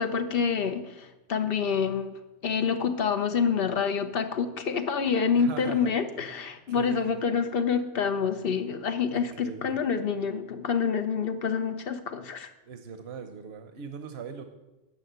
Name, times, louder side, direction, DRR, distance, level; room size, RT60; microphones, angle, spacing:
voice 1, 0.0-2.1 2.4-12.5, left 6 dB, 65° left, 9 dB, 1.0 m, -27 dB
voice 2, 5.4-5.9 6.8-7.2 9.1-9.8 12.6-14.5, right 6 dB, 90° right, 7 dB, 1.0 m, -40 dB
10.0 x 6.3 x 7.9 m, 1.0 s
omnidirectional pair, 1.0 m